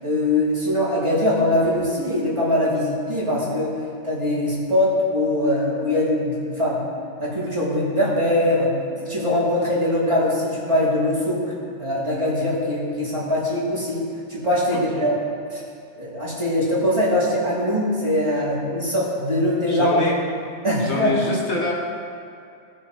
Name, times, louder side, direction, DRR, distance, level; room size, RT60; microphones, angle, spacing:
voice 1, 0.0-3.8 4.0-6.8 7.2-8.8 9.0-11.4 11.8-15.2 15.5-15.6 16.0-20.0 20.6-21.1, left 1 dB, 25° right, -8 dB, 2.9 m, -22 dB
voice 2, 14.7-15.1 19.7-20.2 20.8-21.7, left 2 dB, 65° left, -3 dB, 1.8 m, -26 dB
18.0 x 6.4 x 3.2 m, 2.4 s
omnidirectional pair, 1.2 m